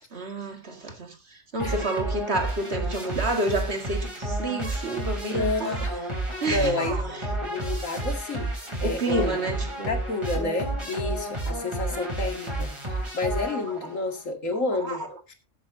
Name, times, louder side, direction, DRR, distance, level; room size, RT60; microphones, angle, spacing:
voice 1, 0.1-5.8 6.4-7.3 8.8-10.0 14.8-15.1, right 2 dB, 55° right, 2.1 m, -30 dB
sound 1, 1.6-14.0, right 1 dB, 20° right, 4.0 m, -31 dB
voice 2, 5.2-6.0 6.4-7.0 7.4-8.5 8.8-9.4 9.9-15.0 15.3-15.4, left 2 dB, 80° left, 2.5 m, -30 dB
20.5 x 7.8 x 2.7 m
omnidirectional pair, 1.3 m